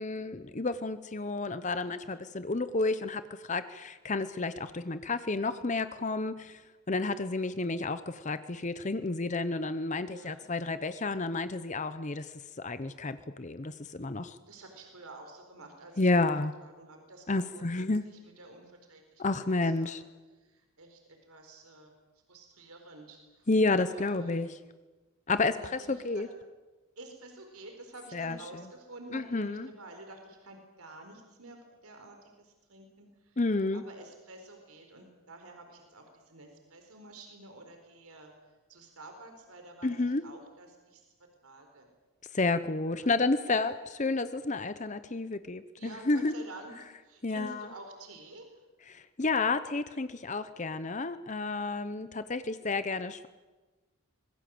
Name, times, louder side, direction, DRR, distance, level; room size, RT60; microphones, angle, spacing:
voice 1, 0.0-6.6 6.9-14.4 16.0-16.5 17.3-18.1 19.2-20.0 23.5-24.6 25.3-26.3 28.1-28.4 29.1-29.7 33.4-33.8 39.8-40.2 42.3-46.5 47.2-47.7 48.9-53.3, left 3 dB, 35° left, 12 dB, 0.8 m, -31 dB
voice 2, 1.7-2.3 10.0-10.5 14.5-16.3 16.6-17.9 18.2-20.0 20.4-21.0 21.3-21.9 22.3-24.6 25.6-26.2 27.0-33.4 33.7-38.3 38.7-41.0 41.4-41.9 43.0-43.2 43.5-43.6 45.8-46.7 47.0-48.6, right 2 dB, 90° right, 4 dB, 4.4 m, -50 dB
25.0 x 21.5 x 7.8 m, 1.2 s
head